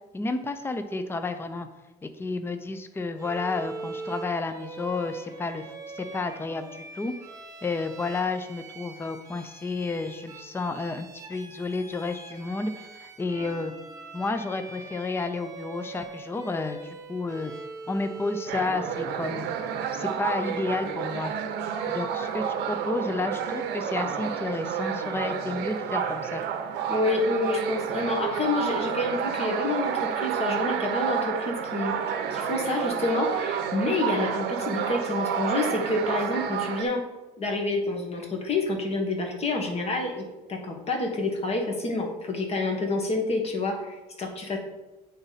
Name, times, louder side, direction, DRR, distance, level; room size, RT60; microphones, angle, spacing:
voice 1, 0.1-1.7 2.0-5.6 5.9-7.1 7.6-13.7 14.1-17.5 17.9-19.5 19.9-21.3 21.9-26.4, left 3 dB, 15° left, 9 dB, 0.5 m, -31 dB
Bowed string instrument, 3.2-19.0, right 3 dB, 20° right, 1.1 m, -42 dB
sound 1, 18.5-36.8, right 8 dB, 80° right, 0.7 m, -30 dB
voice 2, 26.9-37.0 37.4-44.6, left 2 dB, 40° left, 1 dB, 1.5 m, -28 dB
8.5 x 3.9 x 4.1 m, 1.1 s
cardioid pair, 110°, 17 cm